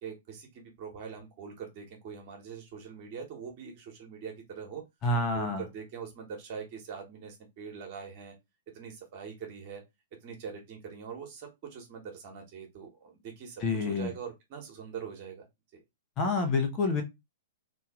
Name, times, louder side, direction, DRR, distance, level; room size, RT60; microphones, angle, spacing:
voice 1, 0.0-4.8 5.1-8.3 8.7-9.8 10.2-15.5 15.7-15.8, right 6 dB, 45° right, 2 dB, 1.3 m, -43 dB
voice 2, 5.0-5.6 13.6-14.1 16.2-17.0, left 3 dB, 30° left, 6 dB, 1.2 m, -28 dB
2.9 x 2.8 x 3.7 m, 0.20 s
hypercardioid pair, 110°, 0 cm